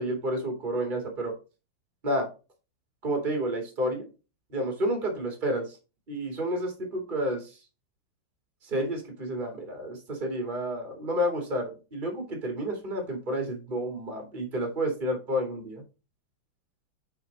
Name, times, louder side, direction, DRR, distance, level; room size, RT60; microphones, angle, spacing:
voice 1, 0.0-1.3 2.0-2.3 3.0-4.0 4.5-5.8 6.1-7.6 8.6-15.8, equal, 25° right, 3 dB, 2.4 m, -30 dB
9.2 x 4.2 x 4.0 m, 0.30 s
omnidirectional pair, 2.2 m